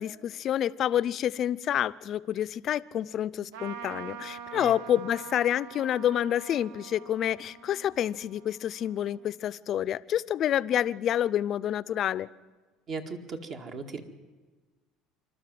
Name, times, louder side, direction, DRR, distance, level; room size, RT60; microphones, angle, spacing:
voice 1, 0.0-12.3, left 10 dB, 50° left, 17 dB, 0.6 m, -28 dB
Trumpet, 3.5-9.3, right 8 dB, 90° right, 1.1 m, -45 dB
voice 2, 12.9-14.0, right 4 dB, 50° right, 4 dB, 2.0 m, -37 dB
27.5 x 12.0 x 7.8 m, 1.3 s
cardioid pair, 115°, 0 cm